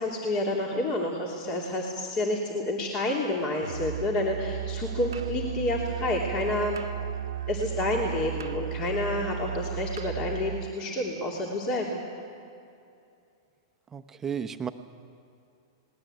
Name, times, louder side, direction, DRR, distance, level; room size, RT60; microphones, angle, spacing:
voice 1, 0.0-6.8 7.5-12.0, left 1 dB, 35° left, -1 dB, 3.0 m, -29 dB
Musical instrument, 3.6-10.7, right 9 dB, 85° right, 1.0 m, -34 dB
voice 2, 13.9-14.7, right 7 dB, 15° right, 8 dB, 0.9 m, -33 dB
19.5 x 18.0 x 9.2 m, 2.6 s
hypercardioid pair, 120°, 2 cm